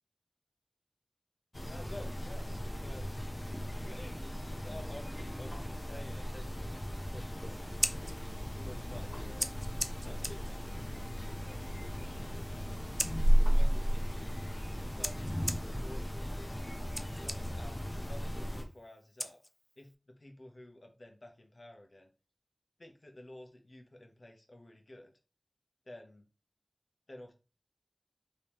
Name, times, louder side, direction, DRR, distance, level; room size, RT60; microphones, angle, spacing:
sound 1, 1.5-18.6, equal, 45° left, 0.7 m, -34 dB
voice 1, 1.7-3.1 3.6-4.3 4.6-7.8 8.6-9.5 10.0-13.1 13.5-14.4 14.7-15.2 15.5-16.5 17.2-19.4 19.8-19.9 20.2-22.1 22.8-25.1 25.9-26.3 27.1-27.3, left 1 dB, 80° left, 3 dB, 0.8 m, -52 dB
Scissors, 7.6-19.9, equal, 5° left, 0.4 m, -43 dB
3.5 x 2.9 x 3.0 m, 0.33 s
wide cardioid pair, 45°, 0 cm